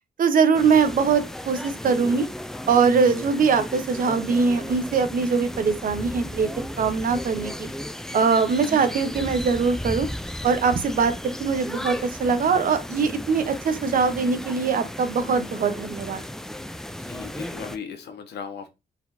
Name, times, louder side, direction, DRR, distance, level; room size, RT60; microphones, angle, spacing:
voice 1, 0.2-2.3 2.7-6.5 6.8-7.7 8.1-10.1 10.4-16.2, right 5 dB, 55° right, 0.8 m, -22 dB
sound 1, 0.5-17.8, left 1 dB, 5° left, 0.3 m, -35 dB
voice 2, 17.0-18.7, left 6 dB, 85° left, 1.2 m, -37 dB
4.6 x 4.0 x 2.6 m
wide cardioid pair, 150°, 17 cm